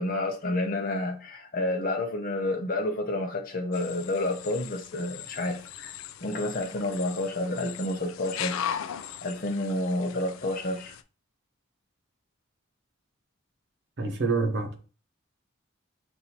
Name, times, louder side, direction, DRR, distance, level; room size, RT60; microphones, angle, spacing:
voice 1, 0.0-5.9 6.2-8.6 9.2-11.0, left 1 dB, 45° left, 0.6 m, -29 dB
sound 1, 3.7-11.0, left 9 dB, 85° left, 0.4 m, -39 dB
voice 2, 14.0-14.8, right 3 dB, 55° right, 0.9 m, -27 dB
6.0 x 2.6 x 2.8 m
head